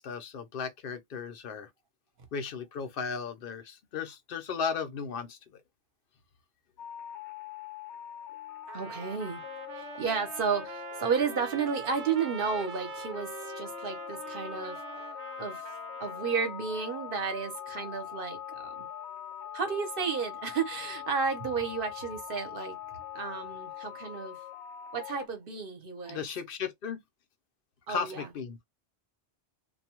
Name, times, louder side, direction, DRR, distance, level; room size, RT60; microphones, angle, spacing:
voice 1, 0.0-1.7 2.3-5.6 26.1-27.0 27.9-28.6, left 6 dB, 60° left, 0.8 m, -35 dB
sound 1, 6.8-25.3, left 10 dB, 85° left, 0.9 m, -42 dB
voice 2, 8.7-9.4 9.7-14.8 15.4-15.7 16.0-18.9 19.5-22.8 23.1-24.4 24.9-26.3 27.9-28.3, right 5 dB, 55° right, 1.0 m, -32 dB
Trumpet, 8.7-16.4, right 8 dB, 85° right, 0.9 m, -44 dB
2.5 x 2.3 x 2.9 m
omnidirectional pair, 1.1 m